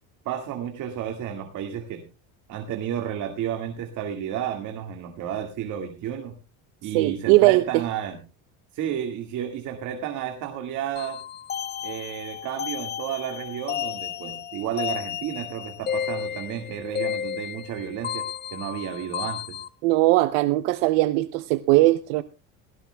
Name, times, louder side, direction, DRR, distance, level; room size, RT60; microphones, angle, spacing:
voice 1, 0.3-2.0 2.5-6.3 6.8-8.2 8.7-11.2 11.8-18.2 18.5-19.6, right 9 dB, 60° right, 1.9 m, -32 dB
voice 2, 6.9-7.8 19.8-22.2, right 19 dB, 90° right, 0.7 m, -19 dB
sound 1, 11.0-19.7, left 9 dB, 30° left, 0.7 m, -33 dB
18.0 x 16.5 x 2.2 m
cardioid pair, 130°, 34 cm